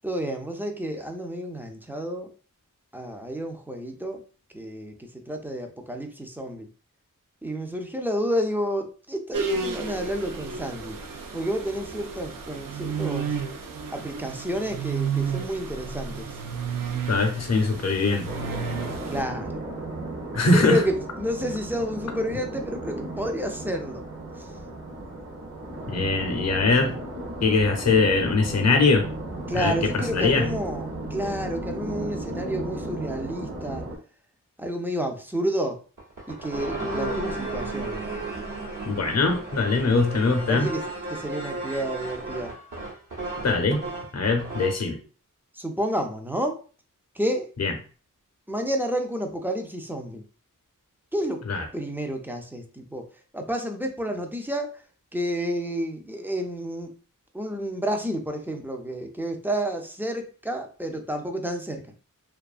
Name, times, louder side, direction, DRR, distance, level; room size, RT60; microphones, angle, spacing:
voice 1, 0.0-2.3 2.9-4.2 4.5-6.7 7.4-11.0 11.3-13.4 13.9-16.3 19.1-19.6 20.5-24.1 24.4-24.5 29.5-33.9 34.6-35.8 36.3-38.0 40.5-42.5 45.5-46.6 47.1-47.5 48.5-50.2 51.1-51.4 51.7-53.1 53.3-54.8 55.1-56.9 57.3-61.9, equal, 5° right, 4 dB, 0.4 m, -30 dB
sound 1, 9.3-19.2, right 5 dB, 90° right, 0.5 m, -32 dB
voice 2, 17.1-18.3 20.3-20.8 25.9-26.9 27.4-29.1 29.6-30.5 38.8-40.7 43.4-43.8 44.1-45.0 47.6-47.7 51.5-51.6, left 3 dB, 55° left, 4 dB, 0.6 m, -22 dB
sound 2, 18.2-34.0, right 2 dB, 45° right, 0.7 m, -35 dB
sound 3, 36.0-44.8, right 2 dB, 70° right, 1.0 m, -34 dB
2.6 x 2.3 x 2.3 m, 0.38 s
wide cardioid pair, 85°, 33 cm